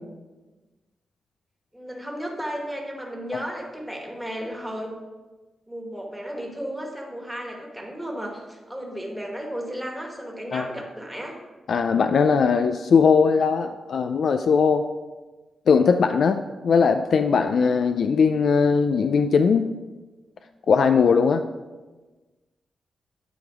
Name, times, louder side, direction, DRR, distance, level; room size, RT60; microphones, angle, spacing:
voice 1, 1.7-4.9 5.7-11.3, equal, 5° right, 0 dB, 1.4 m, -34 dB
voice 2, 11.7-14.9 15.7-19.7 20.7-21.4, left 5 dB, 70° left, 8 dB, 0.3 m, -19 dB
9.0 x 3.9 x 4.8 m, 1.2 s
cardioid pair, 95°, 0 cm